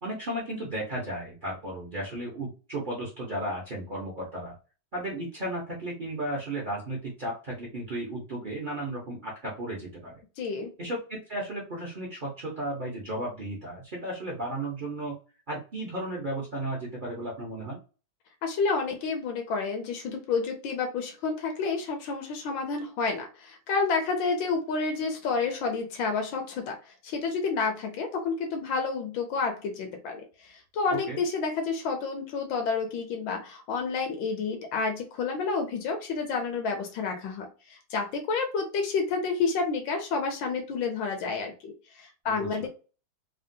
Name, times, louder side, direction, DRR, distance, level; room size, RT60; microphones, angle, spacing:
voice 1, 0.0-4.5 4.9-10.2 10.8-15.1 15.5-17.8 30.9-31.2 42.3-42.7, right 1 dB, 65° right, -4 dB, 0.4 m, -34 dB
voice 2, 10.4-10.7 18.4-41.7 42.0-42.7, left 4 dB, 80° left, 4 dB, 1.4 m, -30 dB
3.5 x 2.1 x 2.6 m, 0.34 s
omnidirectional pair, 2.1 m